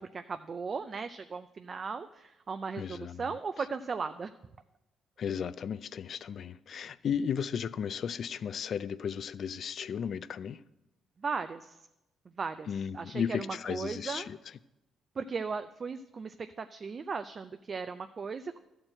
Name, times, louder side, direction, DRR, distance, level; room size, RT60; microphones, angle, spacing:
voice 1, 0.0-4.3 11.2-11.8 12.3-12.7 12.9-14.3 15.2-18.6, right 5 dB, 40° right, 0.4 m, -37 dB
voice 2, 2.8-3.3 5.2-10.6 12.7-14.4, left 7 dB, 60° left, 0.3 m, -35 dB
12.5 x 4.5 x 7.6 m
cardioid pair, 90°, 0 cm